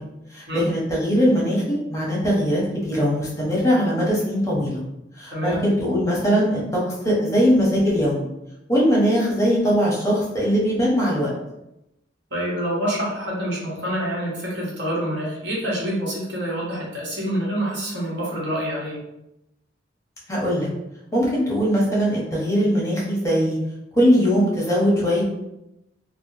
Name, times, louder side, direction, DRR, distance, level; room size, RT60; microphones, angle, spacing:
voice 1, 0.3-4.8 5.2-8.3 8.7-11.3 20.3-20.7 21.1-23.6 23.9-25.3, equal, 15° left, -5 dB, 0.8 m, -21 dB
voice 2, 5.3-5.6 12.3-19.0, equal, 70° right, -5 dB, 1.0 m, -27 dB
3.2 x 2.0 x 2.7 m, 0.87 s
head